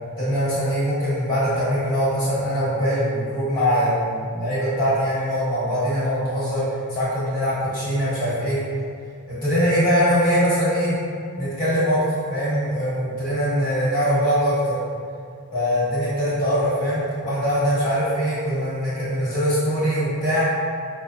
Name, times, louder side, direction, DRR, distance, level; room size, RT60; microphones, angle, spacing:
voice 1, 0.2-8.6 9.3-10.9 11.4-12.0 12.3-14.8 15.5-20.5, equal, 30° left, -12 dB, 1.1 m, -22 dB
5.0 x 2.0 x 2.6 m, 2.4 s
head